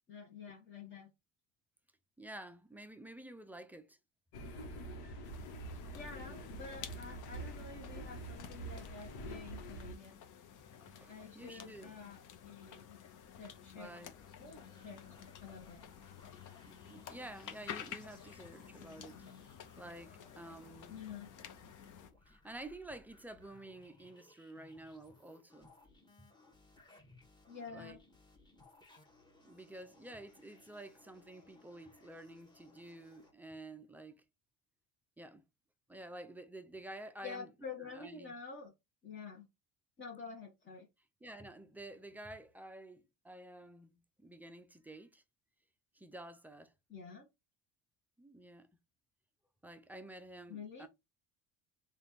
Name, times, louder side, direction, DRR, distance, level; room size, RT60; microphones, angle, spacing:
voice 1, 0.1-1.1 5.9-10.1 11.1-13.0 13.4-13.9 14.4-15.0 15.4-15.8 20.9-21.3 27.5-28.0 37.2-38.7 39.0-39.5 40.0-40.9 46.9-47.3 50.5-50.9, left 5 dB, 30° left, 1.0 m, -49 dB
voice 2, 2.2-4.0 6.3-6.6 10.7-11.9 13.8-14.1 16.7-19.2 19.8-20.9 22.2-25.7 26.2-26.3 27.7-28.0 29.4-34.2 35.2-35.4 35.9-37.5 37.8-38.3 41.2-45.2 45.9-46.7 48.2-48.7 49.6-50.9, right 1 dB, 5° right, 0.4 m, -51 dB
sound 1, 4.3-9.9, right 1 dB, 75° left, 1.1 m, -46 dB
sound 2, 5.2-22.1, left 8 dB, 55° left, 0.8 m, -52 dB
sound 3, 14.1-33.3, left 2 dB, 10° left, 1.2 m, -64 dB
3.3 x 2.4 x 4.2 m
cardioid pair, 110°, 38 cm